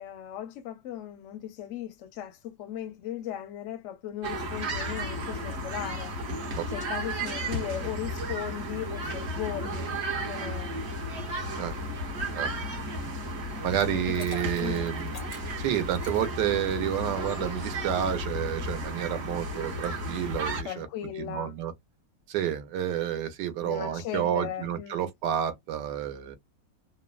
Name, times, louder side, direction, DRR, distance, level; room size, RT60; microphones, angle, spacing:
voice 1, 0.0-6.1 6.7-10.0 10.3-10.8 13.9-14.0 14.6-14.9 20.6-21.5 23.6-25.1, left 10 dB, 65° left, 0.7 m, -37 dB
sound 1, 4.2-20.6, equal, 45° right, 1.1 m, -33 dB
voice 2, 13.6-15.1 15.6-21.7 22.3-26.4, right 10 dB, 75° right, 1.3 m, -30 dB
Liquid, 13.9-17.0, left 3 dB, 90° left, 0.3 m, -46 dB
3.3 x 2.1 x 2.3 m
omnidirectional pair, 1.9 m